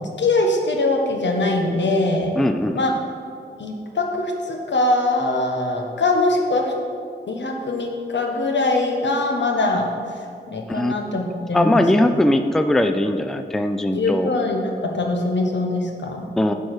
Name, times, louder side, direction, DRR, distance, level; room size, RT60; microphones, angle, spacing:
voice 1, 0.0-2.3 2.7-2.9 3.6-6.7 7.3-9.8 10.5-11.8 13.9-16.3, left 2 dB, 75° left, 1 dB, 1.0 m, -22 dB
voice 2, 2.4-2.8 10.7-11.2 11.5-14.3 16.4-16.5, left 1 dB, ahead, 7 dB, 0.4 m, -20 dB
8.3 x 4.7 x 4.8 m, 2.3 s
cardioid pair, 60°, 19 cm